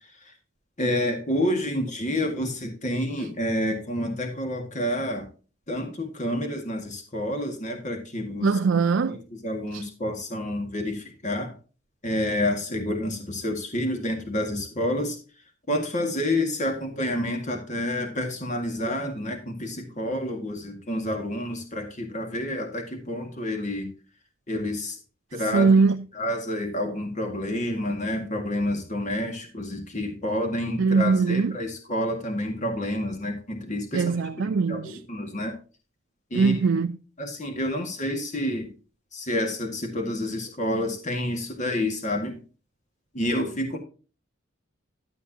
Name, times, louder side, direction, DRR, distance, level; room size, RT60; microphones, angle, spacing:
voice 1, 0.8-5.2 5.7-8.5 9.1-9.2 9.4-11.5 12.0-15.2 15.7-23.9 24.5-25.0 25.3-25.7 26.2-34.2 34.7-35.5 36.3-36.6 37.2-38.7 39.1-42.4 43.1-43.8, left 1 dB, 40° left, 2.0 m, -29 dB
voice 2, 8.4-9.2 9.7-9.8 25.4-26.0 30.8-31.6 33.9-35.0 36.3-37.0, right 4 dB, 80° right, 0.4 m, -22 dB
12.5 x 8.1 x 2.8 m
head